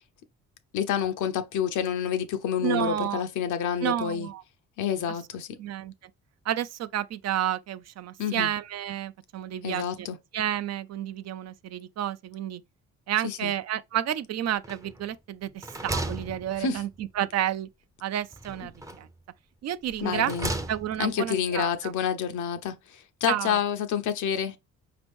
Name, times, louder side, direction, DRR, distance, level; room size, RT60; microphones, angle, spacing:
voice 1, 0.7-4.3 4.8-5.6 8.2-8.5 9.6-10.2 13.2-13.5 16.6-16.8 20.0-20.5 21.0-24.6, left 8 dB, 80° left, 0.8 m, -28 dB
voice 2, 2.6-3.2 3.8-4.4 5.6-5.9 6.5-10.1 10.3-12.6 13.1-17.7 18.0-18.7 19.0-19.1 19.6-20.3 20.7-21.9 23.3-23.6, right 11 dB, 60° right, 0.5 m, -30 dB
sound 1, 14.6-15.1 15.5-17.1 18.3-19.2 19.9-21.1, right 1 dB, 10° right, 0.6 m, -35 dB
5.1 x 2.9 x 3.5 m
cardioid pair, 90°, 30 cm